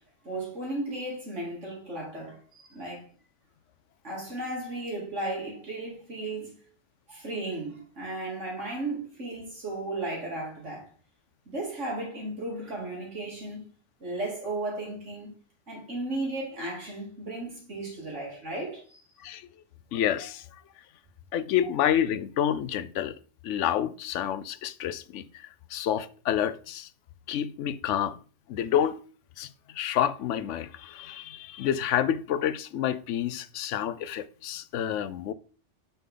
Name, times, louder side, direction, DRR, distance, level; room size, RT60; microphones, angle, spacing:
voice 1, 0.2-3.0 4.0-6.5 7.1-10.9 11.5-13.7 14.0-15.3 15.7-19.0, right 2 dB, 85° right, 3.4 m, -35 dB
voice 2, 19.9-20.4 21.3-23.2 23.4-26.9 27.3-28.2 28.5-29.0 29.4-35.3, left 10 dB, 85° left, 0.9 m, -29 dB
8.9 x 5.7 x 3.8 m
omnidirectional pair, 1.2 m